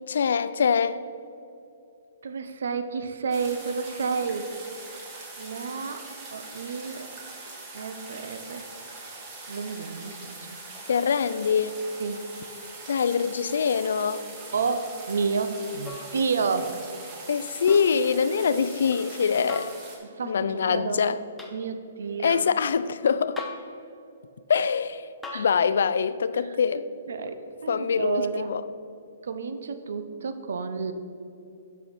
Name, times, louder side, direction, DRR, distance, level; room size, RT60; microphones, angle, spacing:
voice 1, 0.1-1.0 10.9-11.7 12.9-14.2 17.3-19.7 20.2-21.2 22.2-23.5 24.5-25.1 25.3-26.8 27.7-28.6, left 6 dB, 70° left, 0.3 m, -24 dB
voice 2, 2.2-4.5 5.4-7.1 7.7-8.6 9.5-10.6 12.0-12.2 14.5-16.9 20.1-21.0 21.5-22.4 25.3-25.5 27.1-28.5 29.2-30.9, right 5 dB, 80° right, 0.6 m, -30 dB
sound 1, 3.3-20.0, right 3 dB, 20° right, 1.2 m, -42 dB
sound 2, 15.8-16.2 17.7-18.0 19.5-19.8 21.4-21.6 23.4-23.7 25.2-25.5 27.3-27.4, left 3 dB, ahead, 0.6 m, -39 dB
6.3 x 5.6 x 6.1 m
hypercardioid pair, 165°, 0 cm